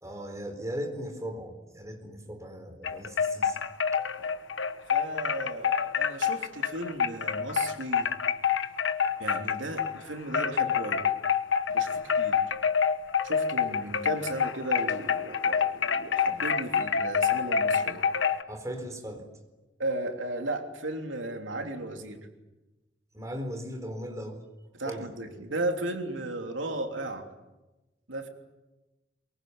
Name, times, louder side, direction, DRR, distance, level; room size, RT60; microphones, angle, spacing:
voice 1, 0.0-3.6 18.5-19.3 23.1-24.4 24.9-25.1, equal, 15° right, 5 dB, 4.2 m, -38 dB
sound 1, 2.8-10.0 10.3-18.4, left 7 dB, 80° left, 1.3 m, -27 dB
voice 2, 4.9-8.1 9.2-11.0 11.7-12.4 13.2-18.0 19.8-22.2 24.7-27.3 28.1-28.3, right 2 dB, 85° right, 4 dB, 3.3 m, -35 dB
23.5 x 23.5 x 9.6 m, 1.1 s
head